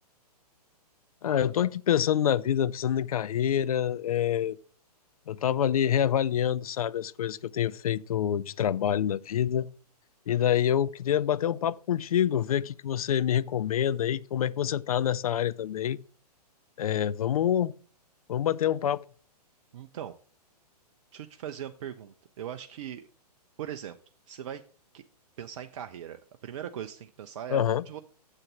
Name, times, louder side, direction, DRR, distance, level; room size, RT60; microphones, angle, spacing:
voice 1, 1.2-4.6 5.3-9.7 10.3-16.0 16.8-17.7 18.3-19.0 27.5-27.8, left 10 dB, 60° left, 0.5 m, -26 dB
voice 2, 19.7-20.1 21.1-23.1 23.6-24.0 24.3-24.6 24.9-25.0 25.4-28.0, right 10 dB, 50° right, 0.6 m, -39 dB
7.3 x 6.6 x 7.2 m
figure-of-eight pair, 120°, 21 cm